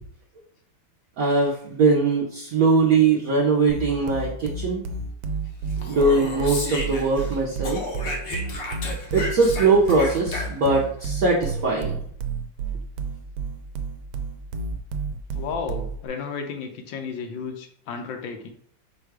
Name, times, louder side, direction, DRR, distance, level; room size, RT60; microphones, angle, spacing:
voice 1, 1.2-4.8 5.9-7.8 9.1-12.0, right 3 dB, 60° right, -4 dB, 1.0 m, -21 dB
sound 1, 3.7-16.1, right 4 dB, 85° right, 1.3 m, -31 dB
Speech, 5.7-7.3 7.6-10.8, left 2 dB, 55° left, 0.7 m, -33 dB
voice 2, 15.3-18.5, left 5 dB, 80° left, 5 dB, 1.3 m, -33 dB
4.7 x 2.3 x 4.6 m, 0.63 s
omnidirectional pair, 2.1 m